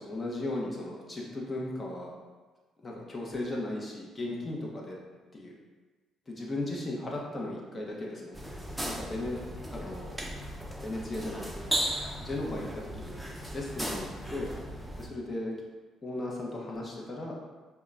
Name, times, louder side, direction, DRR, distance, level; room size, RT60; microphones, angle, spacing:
voice 1, 0.0-2.1 2.8-5.0 5.3-5.6 6.3-8.4 8.8-9.3 9.7-10.1 10.8-11.5 12.2-13.2 13.5-14.5 15.0-15.6 16.0-17.3, left 2 dB, 30° left, -2 dB, 0.9 m, -36 dB
sound 1, 8.3-15.1, right 1 dB, 5° right, 0.6 m, -36 dB
5.0 x 2.3 x 2.6 m, 1.3 s
supercardioid pair, 65°, 0 cm